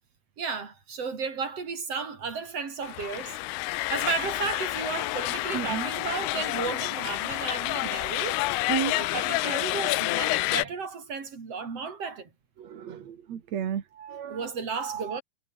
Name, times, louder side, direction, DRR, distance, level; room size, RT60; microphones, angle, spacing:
voice 1, 0.4-3.4 3.7-8.6 8.9-12.3 14.3-15.2, right 5 dB, 30° right, 4.4 m, -34 dB
sound 1, 2.8-10.7, left 20 dB, 90° left, 3.3 m, -29 dB
voice 2, 5.5-5.9 8.7-8.9 12.6-14.5 14.8-15.2, right 9 dB, 55° right, 2.0 m, -33 dB
omnidirectional pair, 5.8 m